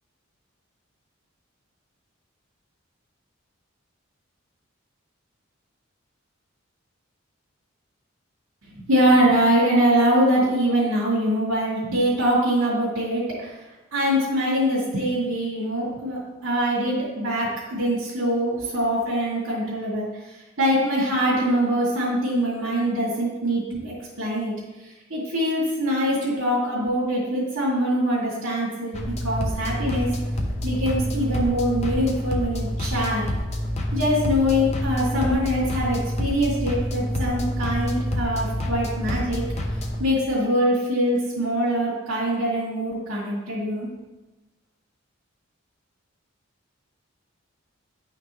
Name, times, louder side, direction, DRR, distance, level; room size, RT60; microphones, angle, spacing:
voice 1, 8.8-13.5 13.9-20.1 20.6-24.5 25.1-30.1 30.6-33.3 33.9-39.4 40.0-43.9, equal, 85° right, -9 dB, 2.7 m, -23 dB
sound 1, 28.9-40.0, equal, 30° left, 0.9 m, -27 dB
10.5 x 5.8 x 3.2 m, 1.1 s
head